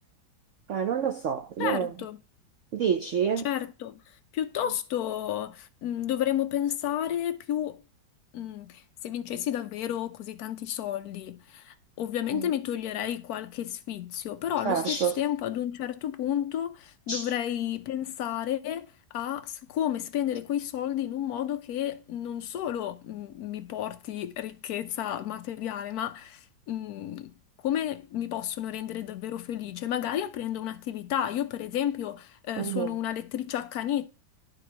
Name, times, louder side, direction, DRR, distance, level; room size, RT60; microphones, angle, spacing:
voice 1, 0.7-1.9 2.7-3.5 12.3-12.5 14.6-15.2 17.1-17.3 32.6-33.0, right 7 dB, 75° right, 0.7 m, -28 dB
voice 2, 1.6-2.2 3.4-4.0 4.3-7.8 8.3-27.3 27.6-34.1, left 11 dB, 65° left, 1.0 m, -32 dB
11.5 x 3.9 x 2.9 m
omnidirectional pair, 2.0 m